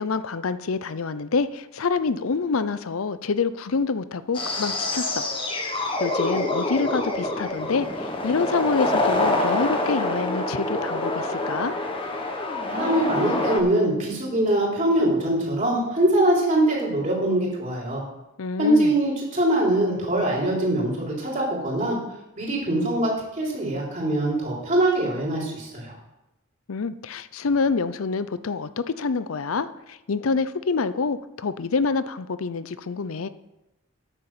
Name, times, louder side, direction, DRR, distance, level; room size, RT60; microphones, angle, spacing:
voice 1, 0.0-5.3 6.0-11.7 18.4-19.0 26.7-33.3, left 4 dB, 80° left, 14 dB, 0.6 m, -26 dB
sound 1, 4.3-13.6, left 2 dB, 25° left, 1.2 m, -26 dB
voice 2, 12.7-18.0 18.6-22.0 22.4-25.9, right 1 dB, 35° right, -3 dB, 3.7 m, -23 dB
10.0 x 6.6 x 7.2 m, 0.92 s
head